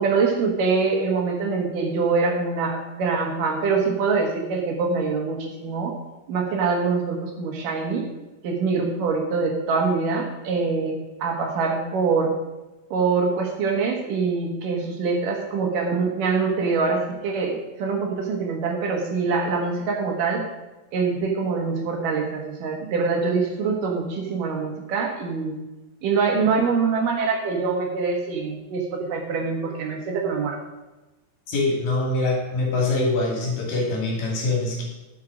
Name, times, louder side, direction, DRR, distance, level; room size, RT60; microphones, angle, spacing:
voice 1, 0.0-5.9 6.3-8.1 8.4-12.3 12.9-20.4 20.9-25.6 26.0-30.6, right 4 dB, 70° right, 1 dB, 3.0 m, -24 dB
voice 2, 31.5-34.8, left 2 dB, 70° left, -1 dB, 4.0 m, -24 dB
11.5 x 7.5 x 5.1 m, 1.1 s
omnidirectional pair, 4.1 m